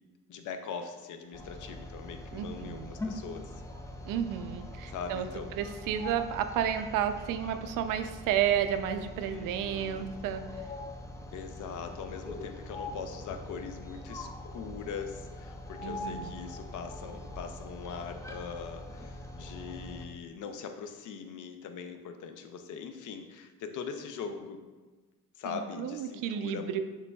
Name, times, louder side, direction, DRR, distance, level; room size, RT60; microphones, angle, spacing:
voice 1, 0.3-3.6 4.9-5.5 9.2-10.1 11.3-24.6 25.4-26.7, left 6 dB, 65° left, 7 dB, 0.6 m, -41 dB
sound 1, 1.3-20.1, left 1 dB, 10° left, 0.3 m, -43 dB
voice 2, 2.3-2.9 4.0-5.3 5.5-10.4 15.8-16.3 25.4-26.8, right 9 dB, 80° right, 8 dB, 0.5 m, -31 dB
6.6 x 3.3 x 2.3 m, 1.3 s
cardioid pair, 115°, 32 cm